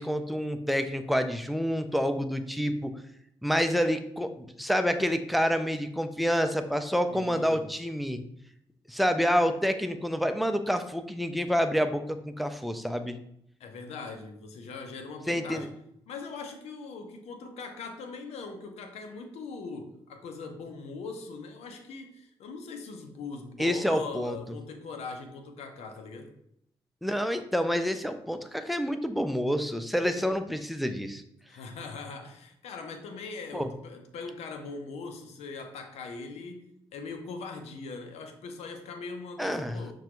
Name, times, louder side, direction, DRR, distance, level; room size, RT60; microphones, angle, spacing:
voice 1, 0.0-2.9 3.4-8.2 8.9-13.2 15.3-15.7 23.6-24.4 27.0-31.2 33.5-33.7 39.4-39.8, equal, ahead, 8 dB, 0.4 m, -28 dB
voice 2, 7.1-7.7 13.6-15.7 16.1-26.4 31.5-39.9, left 4 dB, 80° left, 5 dB, 0.6 m, -41 dB
5.8 x 2.3 x 3.0 m, 0.75 s
supercardioid pair, 55°, 11 cm